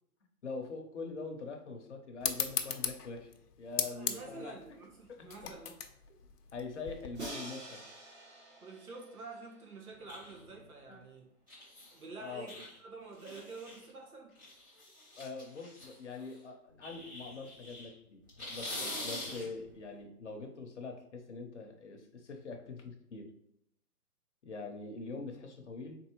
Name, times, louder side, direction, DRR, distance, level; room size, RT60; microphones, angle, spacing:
voice 1, 0.4-3.3 3.6-4.6 5.1-5.3 6.5-7.8 10.9-11.0 12.1-12.6 15.2-23.3 24.4-26.0, left 4 dB, 50° left, 3 dB, 0.8 m, -44 dB
sound 1, 2.2-7.3, left 7 dB, 90° left, 0.7 m, -38 dB
voice 2, 3.8-5.8 8.6-11.3 11.9-14.4, right 3 dB, 70° right, 0 dB, 1.5 m, -48 dB
Crash cymbal, 7.2-10.1, right 2 dB, 45° right, 1.5 m, -47 dB
sound 2, 10.1-10.6 11.5-12.0 12.5-12.8 13.2-13.9 14.3-16.4 16.8-17.9 18.3-19.7, left 1 dB, 15° right, 0.6 m, -44 dB
4.2 x 3.4 x 2.9 m, 0.77 s
hypercardioid pair, 175°, 46 cm